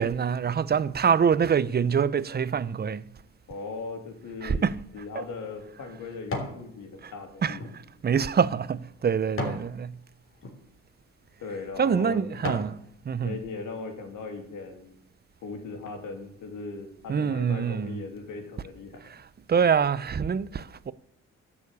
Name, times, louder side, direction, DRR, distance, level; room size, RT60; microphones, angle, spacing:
voice 1, 0.0-3.1 4.4-4.8 7.0-7.1 7.4-7.6 8.0-10.0 11.8-13.4 17.1-18.0 19.1-19.2 19.5-20.9, right 7 dB, 35° right, 0.7 m, -25 dB
voice 2, 3.5-4.7 4.9-7.6 11.4-12.3 13.2-14.9 15.4-19.1, left 4 dB, 75° left, 3.2 m, -38 dB
sound 1, 4.8-6.6 7.1-9.7 10.3-10.6 11.2-11.4 11.9-12.8 13.3-13.4, left 2 dB, 45° left, 3.5 m, -37 dB
12.0 x 7.5 x 8.3 m
cardioid pair, 90°, 30 cm